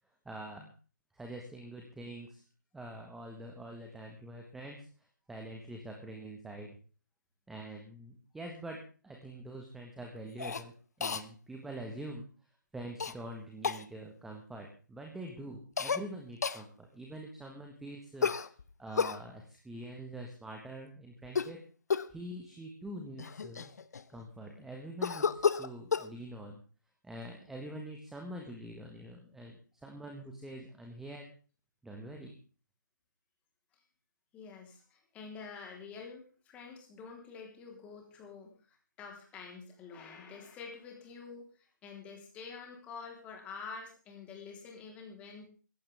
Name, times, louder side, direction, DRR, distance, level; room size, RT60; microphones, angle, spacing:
voice 1, 0.2-0.7 1.1-2.4 2.7-6.8 7.5-10.7 11.0-12.3 12.7-18.3 18.8-21.6 22.1-23.7 24.1-26.6 27.0-31.3 31.8-32.4, right 1 dB, 5° right, 2 dB, 1.5 m, -45 dB
Cough, 10.4-10.6 11.0-11.2 13.0-13.1 13.6-13.8 15.8-16.0 16.4-16.6 18.2-19.2 21.2-21.6 21.9-22.2 22.9-23.0 23.2-24.2 25.0-26.1, left 6 dB, 55° left, 1.0 m, -31 dB
voice 2, 34.3-45.5, left 5 dB, 15° left, 1 dB, 3.6 m, -48 dB
18.0 x 15.0 x 3.5 m, 0.37 s
figure-of-eight pair, 150°, 10 cm